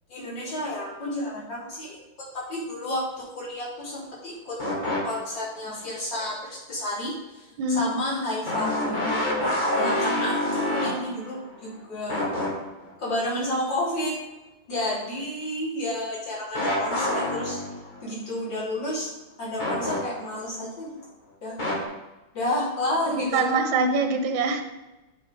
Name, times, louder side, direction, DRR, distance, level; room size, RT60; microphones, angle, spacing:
voice 1, 0.1-4.6 5.0-9.0 9.7-12.3 13.0-14.1 14.7-17.6 18.0-19.1 19.4-20.9 21.4-21.6 22.3-23.4, left 1 dB, 55° left, -6 dB, 3.7 m, -31 dB
sound 1, 4.6-5.5 5.9-6.0 8.5-11.7 12.1-12.9 16.5-18.1 19.6-20.4 21.6-21.8, left 1 dB, 25° left, 1.5 m, -27 dB
voice 2, 7.6-8.3 23.1-24.6, right 3 dB, 70° right, 5 dB, 1.6 m, -25 dB
8.4 x 5.3 x 5.1 m, 1.0 s
omnidirectional pair, 2.3 m